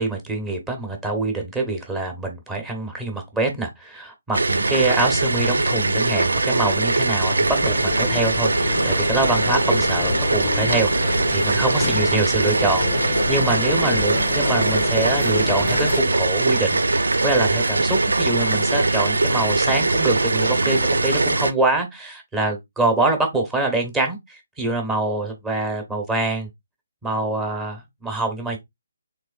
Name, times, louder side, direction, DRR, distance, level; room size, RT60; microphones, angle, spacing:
voice 1, 0.0-26.5 27.0-28.6, right 2 dB, 10° right, 1.0 m, -25 dB
sound 1, 4.3-21.5, right 2 dB, 90° right, 0.4 m, -21 dB
sound 2, 7.4-16.0, left 6 dB, 40° left, 0.4 m, -30 dB
3.4 x 3.1 x 2.4 m
hypercardioid pair, 155°, 0 cm